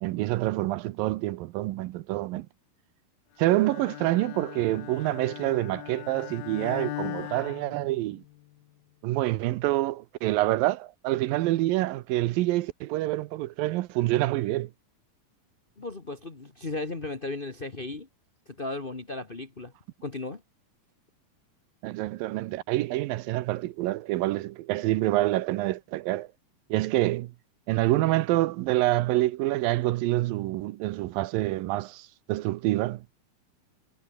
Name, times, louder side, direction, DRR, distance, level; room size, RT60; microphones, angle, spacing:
voice 1, 0.0-2.5 3.4-8.2 9.0-14.7 21.8-26.3 26.7-27.3 27.7-33.1, right 17 dB, 80° right, 2.5 m, -27 dB
Bowed string instrument, 3.5-8.4, left 16 dB, 85° left, 2.8 m, -39 dB
voice 2, 15.8-18.1 18.6-19.7 20.0-20.4, left 2 dB, 70° left, 0.5 m, -35 dB
omnidirectional pair, 4.2 m